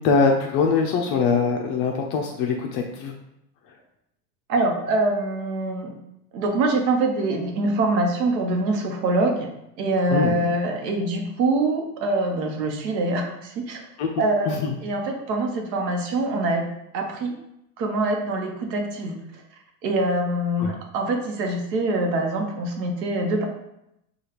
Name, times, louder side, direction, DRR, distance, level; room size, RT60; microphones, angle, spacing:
voice 1, 0.0-3.1 10.1-10.3 14.0-14.1 14.5-14.7 20.6-20.7, left 5 dB, 40° left, 2 dB, 0.4 m, -22 dB
voice 2, 4.5-5.9 6.3-9.5 9.8-13.8 14.2-16.6 16.9-17.3 17.8-19.2 19.8-23.4, right 2 dB, 85° right, 2 dB, 0.9 m, -24 dB
4.8 x 2.4 x 2.9 m, 0.82 s
supercardioid pair, 120°, 49 cm